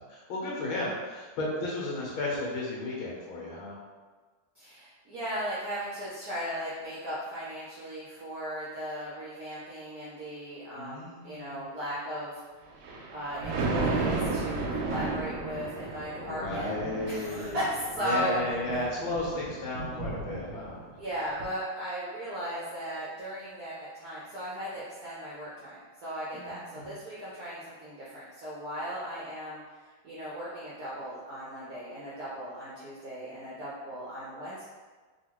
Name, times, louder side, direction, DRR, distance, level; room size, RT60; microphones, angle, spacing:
voice 1, 0.0-3.7 10.7-11.6 16.2-17.6 18.0-20.8 26.3-26.9, left 2 dB, 70° left, -5 dB, 1.6 m, -34 dB
voice 2, 4.6-12.4 13.1-16.7 17.1-18.4 21.0-29.6 30.0-34.6, equal, 70° right, -8 dB, 0.8 m, -36 dB
Thunder, 12.7-21.0 21.4-21.5, right 3 dB, 90° right, 1.6 m, -34 dB
3.9 x 2.4 x 3.0 m, 1.4 s
omnidirectional pair, 2.4 m